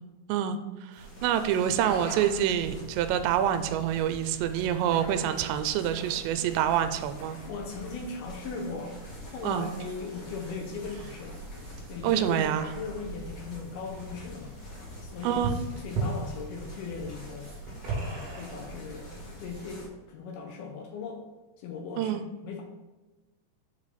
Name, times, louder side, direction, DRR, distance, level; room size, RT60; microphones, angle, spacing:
voice 1, 0.3-7.4 9.4-9.7 12.0-12.6 15.2-15.6 22.0-22.3, right 10 dB, 85° right, 10 dB, 2.7 m, -27 dB
sound 1, 0.9-19.7, right 3 dB, 60° right, 2.6 m, -42 dB
sound 2, 1.0-19.9, right 1 dB, 50° left, 2.6 m, -44 dB
voice 2, 7.5-11.4 11.9-12.5 12.7-14.6 15.0-19.1 19.4-21.2 21.6-22.6, left 4 dB, 75° left, 1 dB, 2.5 m, -39 dB
6.9 x 4.8 x 4.2 m, 1.1 s
omnidirectional pair, 4.9 m